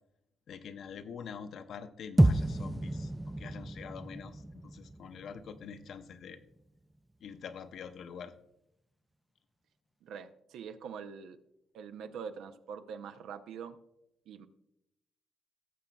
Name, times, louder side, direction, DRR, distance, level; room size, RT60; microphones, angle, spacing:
voice 1, 0.5-3.1 3.4-6.4 7.2-8.3, left 7 dB, 65° left, 9 dB, 0.6 m, -45 dB
sound 1, 2.2-6.5, right 1 dB, 10° right, 0.3 m, -30 dB
voice 2, 10.0-11.4 11.7-13.8 14.3-14.5, right 6 dB, 80° right, 8 dB, 0.6 m, -44 dB
17.5 x 7.0 x 2.3 m, 0.84 s
cardioid pair, 90°, 0 cm